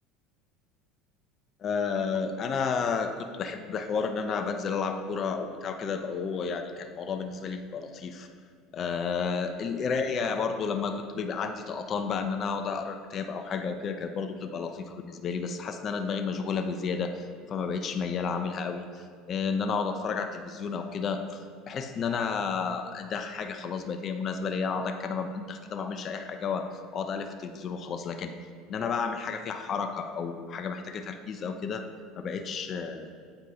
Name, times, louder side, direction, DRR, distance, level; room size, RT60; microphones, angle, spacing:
voice 1, 1.6-8.3 8.7-21.2 21.7-28.3 28.7-31.9 32.2-33.1, left 5 dB, 40° left, 7 dB, 0.4 m, -31 dB
7.7 x 4.5 x 2.7 m, 2.1 s
hypercardioid pair, 70°, 0 cm